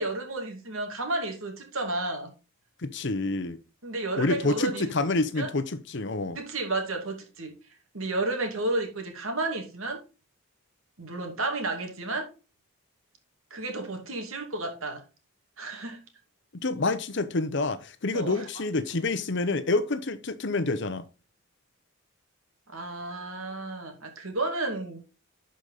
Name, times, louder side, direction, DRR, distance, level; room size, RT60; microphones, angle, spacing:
voice 1, 0.0-2.3 3.8-4.9 5.3-5.5 6.3-7.6 7.9-10.0 11.0-12.3 13.5-15.0 15.6-16.0 18.1-18.5 22.7-25.0, right 2 dB, 70° right, 2.4 m, -32 dB
voice 2, 2.8-3.6 4.2-6.4 16.6-21.1, left 2 dB, 55° left, 0.8 m, -28 dB
11.5 x 5.2 x 4.0 m
head